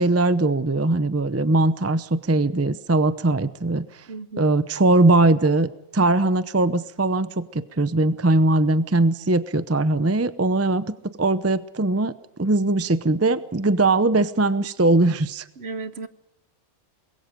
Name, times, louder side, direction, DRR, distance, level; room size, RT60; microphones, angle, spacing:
voice 1, 0.0-4.1 4.4-10.8 11.2-12.1 12.4-15.4, right 2 dB, 15° right, 13 dB, 0.6 m, -20 dB
voice 2, 4.1-4.5 15.6-16.1, right 4 dB, 50° right, 13 dB, 1.2 m, -34 dB
24.5 x 21.5 x 5.2 m, 0.88 s
omnidirectional pair, 1.4 m